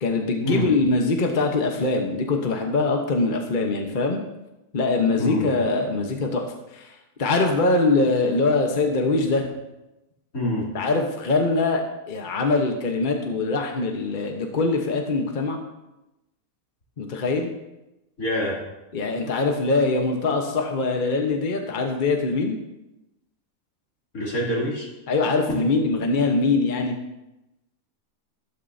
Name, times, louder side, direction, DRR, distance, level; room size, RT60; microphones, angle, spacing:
voice 1, 0.0-4.2 4.7-6.5 6.7-9.5 10.7-15.6 17.0-17.5 18.9-22.6 25.1-27.0, left 3 dB, 40° left, 2 dB, 1.2 m, -23 dB
voice 2, 10.3-10.6 18.2-18.5 24.1-24.9, equal, 80° left, -5 dB, 3.4 m, -25 dB
12.5 x 12.0 x 2.7 m, 0.96 s
omnidirectional pair, 1.5 m